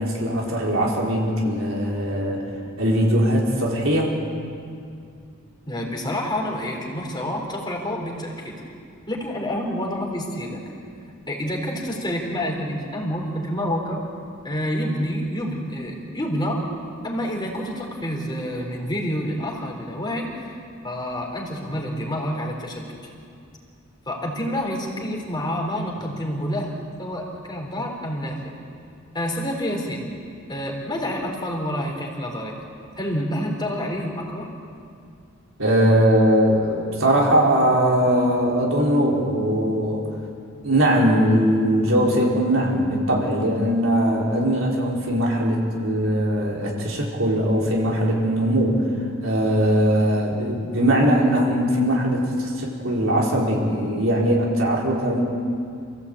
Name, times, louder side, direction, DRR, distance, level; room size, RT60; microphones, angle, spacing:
voice 1, 0.0-2.4 2.8-4.1 35.6-40.1 40.6-48.8 49.2-55.2, equal, 70° right, -2 dB, 4.5 m, -20 dB
voice 2, 5.7-8.6 9.1-10.6 11.3-14.0 14.4-16.6 17.0-20.6 20.8-23.1 24.1-26.7 27.0-28.4 29.1-30.1 30.5-32.6 33.0-34.5 49.9-50.0, equal, 20° left, 0 dB, 3.9 m, -28 dB
27.5 x 16.0 x 8.6 m, 2.4 s
head